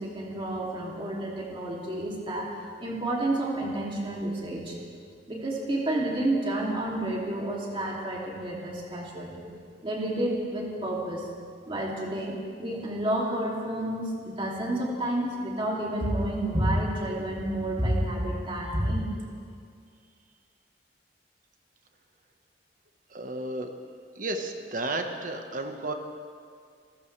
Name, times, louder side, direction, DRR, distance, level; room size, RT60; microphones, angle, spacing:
voice 1, 0.0-4.8 5.3-9.4 9.8-11.3 11.7-19.1, right 1 dB, 30° right, -3 dB, 2.7 m, -30 dB
voice 2, 23.1-23.7 24.1-25.9, right 2 dB, 50° right, 5 dB, 1.3 m, -32 dB
27.0 x 15.0 x 3.3 m, 2.2 s
head